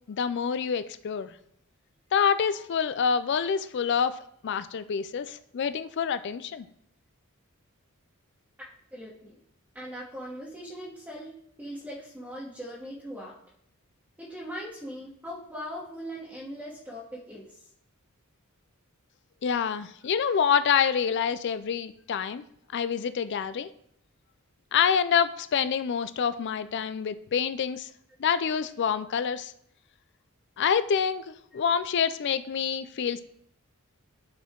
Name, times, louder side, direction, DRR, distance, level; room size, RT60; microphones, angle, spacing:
voice 1, 0.1-1.3 2.1-4.2 4.4-6.7 19.4-22.4 22.7-23.7 24.7-27.9 28.2-29.5 30.6-33.2, left 7 dB, 55° left, 13 dB, 0.4 m, -27 dB
voice 2, 8.9-9.4 9.7-11.3 11.6-13.4 14.2-17.7 29.0-29.1 31.5-31.7, equal, 5° right, -8 dB, 1.4 m, -40 dB
12.0 x 4.3 x 3.7 m, 0.69 s
head